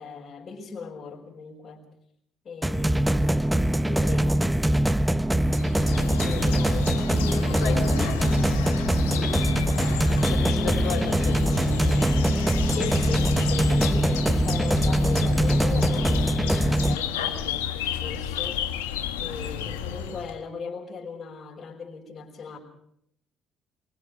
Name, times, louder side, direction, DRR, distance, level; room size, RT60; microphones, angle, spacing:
voice 1, 0.0-1.9 2.4-3.5 3.7-4.9 6.2-8.1 9.1-9.4 12.7-18.7 19.2-22.6, left 5 dB, 50° left, -5 dB, 4.9 m, -38 dB
sound 1, 2.6-16.9, right 1 dB, 10° right, 0.9 m, -23 dB
sound 2, 5.5-20.4, left 8 dB, 90° left, 1.3 m, -32 dB
voice 2, 7.6-8.1 10.2-12.0, left 7 dB, 70° left, -6 dB, 4.6 m, -34 dB
23.5 x 22.5 x 5.0 m, 0.71 s
hypercardioid pair, 50°, 0 cm